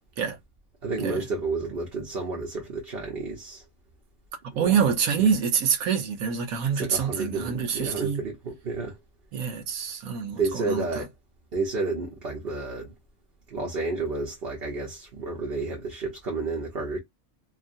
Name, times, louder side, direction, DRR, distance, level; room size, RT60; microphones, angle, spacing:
voice 1, 0.8-3.6 4.5-4.8 5.2-5.3 6.8-9.0 10.4-11.1 11.5-12.9 13.5-17.0, right 3 dB, 50° right, 0.9 m, -31 dB
voice 2, 4.6-8.2 9.3-10.8, right 7 dB, 85° right, 1.2 m, -26 dB
2.9 x 2.4 x 2.5 m
omnidirectional pair, 1.4 m